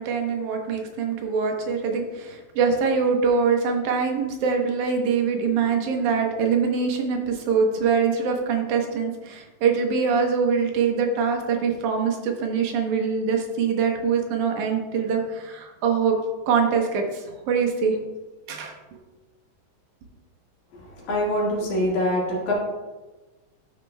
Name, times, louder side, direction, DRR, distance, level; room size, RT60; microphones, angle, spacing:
voice 1, 0.0-16.2 16.5-18.0 18.5-19.0, right 5 dB, 90° right, 3 dB, 2.5 m, -24 dB
voice 2, 21.0-22.5, left 1 dB, 85° left, -5 dB, 3.3 m, -24 dB
11.5 x 6.7 x 2.2 m, 1.2 s
omnidirectional pair, 3.4 m